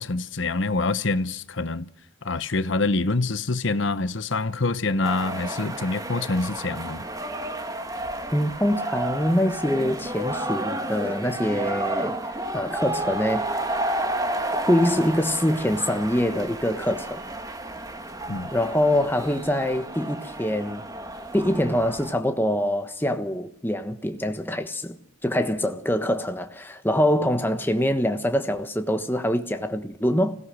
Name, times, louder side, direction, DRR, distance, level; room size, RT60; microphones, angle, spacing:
voice 1, 0.0-1.9 2.2-7.1 18.3-18.5, left 3 dB, 65° left, 0.9 m, -26 dB
sound 1, 5.0-22.1, right 1 dB, 15° right, 1.5 m, -31 dB
voice 2, 8.3-12.1 12.5-13.6 14.5-17.2 18.5-20.8 21.3-30.4, left 1 dB, 10° left, 1.3 m, -24 dB
25.0 x 17.0 x 6.3 m
head